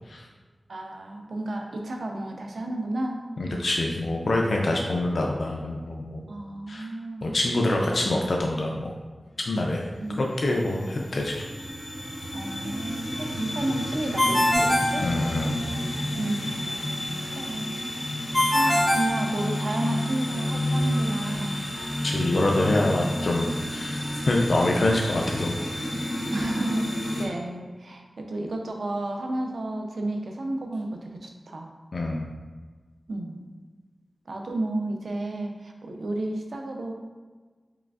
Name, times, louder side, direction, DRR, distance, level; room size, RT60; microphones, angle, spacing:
voice 1, 0.7-3.2 6.3-7.3 7.7-8.1 10.0-10.2 12.3-15.1 16.2-17.0 17.2-17.8 18.1-21.6 26.3-31.7 33.1-33.4 34.3-36.9, right 1 dB, 90° right, 2 dB, 0.5 m, -32 dB
voice 2, 3.4-6.2 6.7-6.9 7.2-8.9 9.5-9.9 10.2-11.4 15.0-15.6 22.0-25.6 31.9-32.3, left 2 dB, 75° left, 0 dB, 0.3 m, -25 dB
sound 1, 9.3-27.3, left 1 dB, 55° left, 0.8 m, -31 dB
Ringtone, 14.2-15.8 18.3-20.0, left 1 dB, 15° left, 0.5 m, -23 dB
4.8 x 3.3 x 2.3 m, 1.4 s
wide cardioid pair, 95°, 0 cm